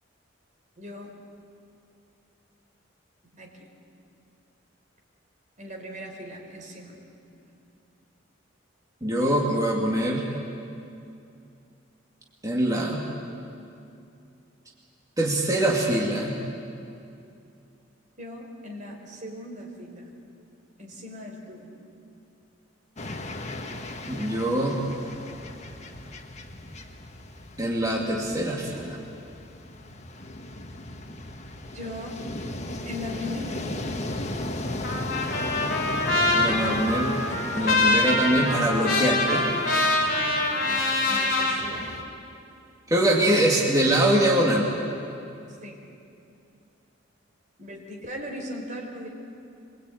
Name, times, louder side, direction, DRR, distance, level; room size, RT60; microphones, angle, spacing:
voice 1, 0.8-1.1 3.3-3.7 5.6-7.0 18.2-20.1 20.8-21.8 31.7-32.2 32.8-33.9 40.6-42.2 45.6-45.8 47.6-49.1, left 1 dB, 40° right, 1 dB, 4.4 m, -39 dB
voice 2, 9.0-10.3 12.4-13.1 15.2-16.4 24.1-24.9 27.6-29.0 36.3-37.1 37.5-39.5 42.9-44.7, right 1 dB, 20° right, -3 dB, 2.4 m, -23 dB
sound 1, 23.0-42.0, left 1 dB, 35° left, 1.5 m, -36 dB
Trumpet, 34.8-41.6, left 2 dB, 50° left, 4.6 m, -24 dB
23.5 x 21.5 x 9.2 m, 2.6 s
head